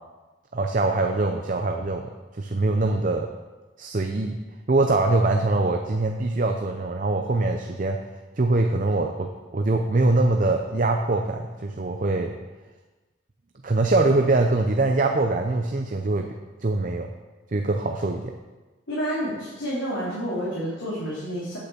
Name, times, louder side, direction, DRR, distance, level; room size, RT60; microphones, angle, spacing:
voice 1, 0.5-3.3 3.8-4.4 4.7-8.0 8.4-12.3 13.6-16.3 16.6-17.1 17.5-18.3, right 2 dB, 40° right, 4 dB, 0.6 m, -23 dB
voice 2, 18.9-21.6, equal, 75° left, -8 dB, 3.3 m, -29 dB
8.9 x 8.5 x 6.9 m, 1.2 s
head